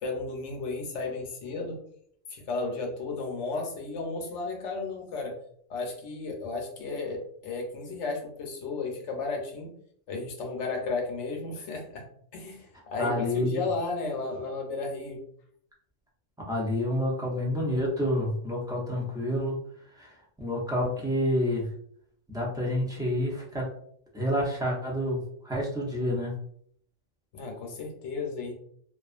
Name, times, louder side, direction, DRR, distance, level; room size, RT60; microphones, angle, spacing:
voice 1, 0.0-1.8 2.3-5.3 5.7-9.7 10.1-12.0 12.3-15.2 27.3-28.5, left 3 dB, 70° left, 1 dB, 1.0 m, -34 dB
voice 2, 13.0-13.6 16.5-19.6 19.9-21.7 22.3-23.7 24.1-26.3, left 1 dB, 5° right, -4 dB, 0.3 m, -28 dB
2.5 x 2.3 x 2.4 m, 0.65 s
omnidirectional pair, 1.3 m